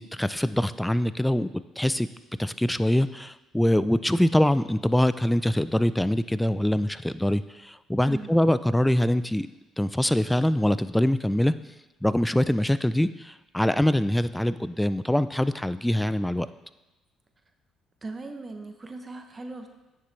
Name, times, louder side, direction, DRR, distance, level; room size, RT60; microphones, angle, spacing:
voice 1, 0.0-2.1 2.4-9.5 9.8-11.5 12.0-16.5, left 1 dB, 5° left, 14 dB, 0.4 m, -24 dB
voice 2, 18.0-19.7, right 3 dB, 30° right, 6 dB, 0.8 m, -38 dB
9.3 x 6.9 x 3.3 m, 1.0 s
supercardioid pair, 70°, 0 cm